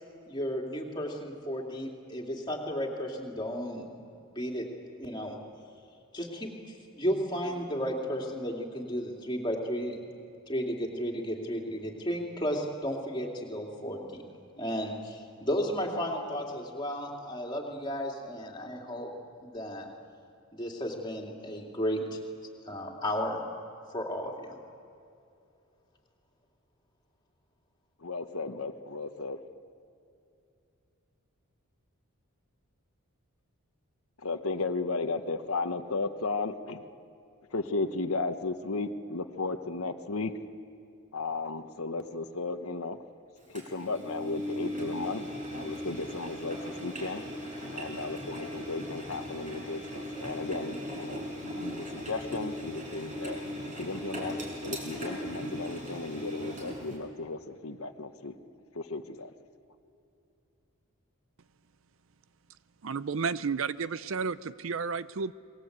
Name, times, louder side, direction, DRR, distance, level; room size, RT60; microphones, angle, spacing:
voice 1, 0.3-3.9 4.3-4.7 5.0-5.4 6.1-6.5 6.9-10.0 10.5-14.2 14.6-19.1 19.4-19.9 20.5-22.2 22.6-23.4 23.9-24.6, equal, 20° left, -1 dB, 2.8 m, -33 dB
voice 2, 28.0-29.4 34.2-36.8 37.5-40.3 41.1-43.0 43.5-45.2 45.5-47.2 47.7-53.4 53.8-54.3 54.6-58.3 58.7-59.3, left 3 dB, 70° left, 7 dB, 1.1 m, -35 dB
Engine, 43.5-57.0, equal, 35° right, 5.7 m, -38 dB
voice 3, 62.8-65.3, right 5 dB, 60° right, 15 dB, 0.5 m, -32 dB
26.5 x 21.0 x 8.1 m, 2.6 s
head